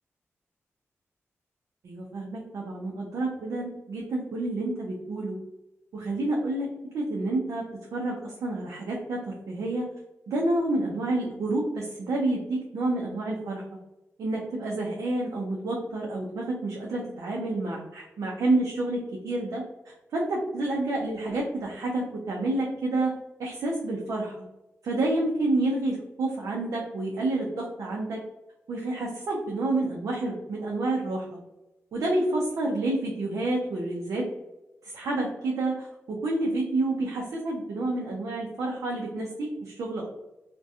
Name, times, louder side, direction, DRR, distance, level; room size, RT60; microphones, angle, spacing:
voice 1, 1.8-5.4 5.9-6.7 6.9-7.6 7.9-9.9 10.3-13.6 14.2-23.1 23.4-24.5 24.8-28.2 28.7-31.4 31.9-34.3 34.8-40.1, right 2 dB, 85° right, -2 dB, 0.4 m, -29 dB
2.6 x 2.1 x 2.3 m, 0.99 s
cardioid pair, 60°, 5 cm